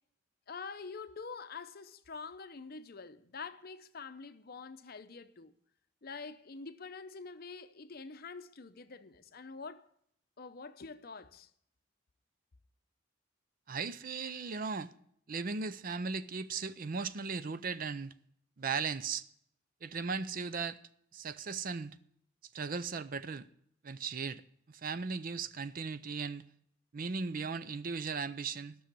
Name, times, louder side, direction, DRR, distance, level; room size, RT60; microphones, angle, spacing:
voice 1, 0.5-5.5 6.0-9.8 10.4-11.5, left 4 dB, 50° left, 0.7 m, -46 dB
voice 2, 13.7-14.9 15.3-18.1 18.6-19.2 19.8-20.8 21.1-22.0 22.5-23.5 23.8-24.4 24.7-26.4 26.9-28.8, right 5 dB, 45° right, 0.5 m, -37 dB
13.0 x 6.3 x 8.2 m
head